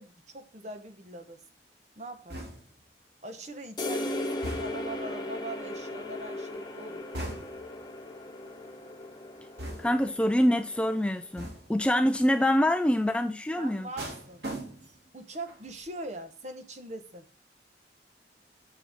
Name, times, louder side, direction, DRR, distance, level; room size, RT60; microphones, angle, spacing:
voice 1, 0.0-1.4 2.0-2.4 3.2-7.0 13.6-14.4 15.1-17.3, right 2 dB, 40° right, 1.0 m, -42 dB
sound 1, 2.3-2.9 4.4-5.0 7.1-7.8 9.6-10.1 11.4-11.8 14.0-15.1 15.5-15.8, right 1 dB, 70° right, 2.7 m, -39 dB
sound 2, 3.8-11.3, left 1 dB, 25° left, 1.2 m, -37 dB
voice 2, 9.8-13.9, equal, 5° left, 0.3 m, -25 dB
7.0 x 6.8 x 3.5 m
head